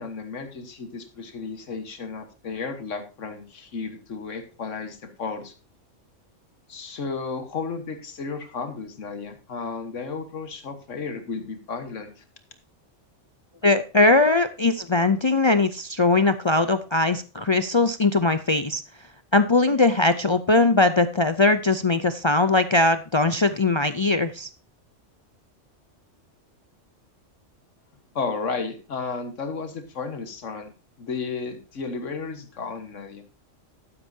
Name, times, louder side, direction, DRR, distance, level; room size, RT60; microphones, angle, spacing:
voice 1, 0.0-5.5 6.7-12.2 28.2-30.7 31.0-33.2, left 4 dB, 85° left, 7 dB, 1.7 m, -33 dB
voice 2, 13.6-18.8 19.3-24.5, left 2 dB, 50° left, 10 dB, 0.3 m, -20 dB
12.0 x 9.9 x 2.7 m, 0.33 s
omnidirectional pair, 1.3 m